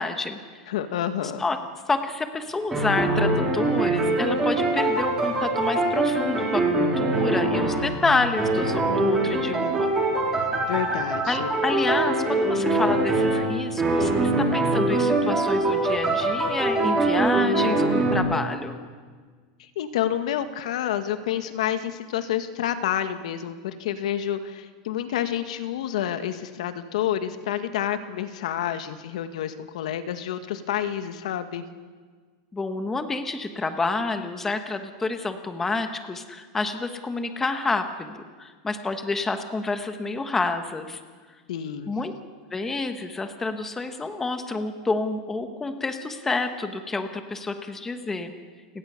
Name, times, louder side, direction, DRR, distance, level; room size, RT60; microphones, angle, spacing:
voice 1, 0.0-0.6 1.4-1.6 1.9-9.9 11.3-18.8 32.5-41.0 41.9-42.1 42.5-48.3, left 3 dB, 10° left, 7 dB, 1.2 m, -28 dB
voice 2, 0.7-1.4 9.6-9.7 10.7-11.5 19.6-31.6 41.5-41.9, left 10 dB, 80° left, 9 dB, 1.9 m, -29 dB
sound 1, 2.7-8.1 8.4-18.1, right 2 dB, 10° right, 4.4 m, -23 dB
29.5 x 18.5 x 6.9 m, 1.5 s
supercardioid pair, 170°, 4 cm